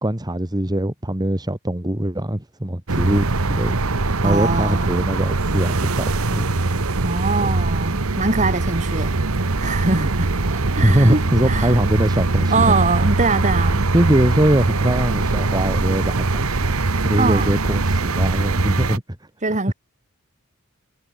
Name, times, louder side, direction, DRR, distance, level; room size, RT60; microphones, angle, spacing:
voice 1, 0.0-3.8 4.2-6.1 6.3-6.4 7.4-7.5 10.8-12.7 13.9-16.6 17.0-19.0 19.7-19.8, right 1 dB, 20° right, 1.8 m, -21 dB
sound 1, 2.9-19.0, right 3 dB, 90° right, 1.3 m, -21 dB
voice 2, 4.2-5.1 7.0-9.2 9.6-10.3 10.7-11.7 12.5-13.9 17.2-17.6 19.4-19.7, right 3 dB, 35° right, 2.2 m, -22 dB
head